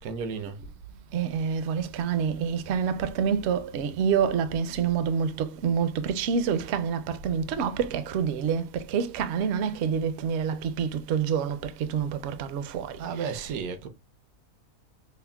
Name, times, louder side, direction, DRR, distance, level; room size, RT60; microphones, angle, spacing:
voice 1, 0.0-0.6 13.0-13.9, right 6 dB, 80° right, 1.1 m, -33 dB
voice 2, 1.1-13.5, right 7 dB, 65° right, 0.7 m, -27 dB
5.6 x 2.1 x 2.2 m
omnidirectional pair, 1.5 m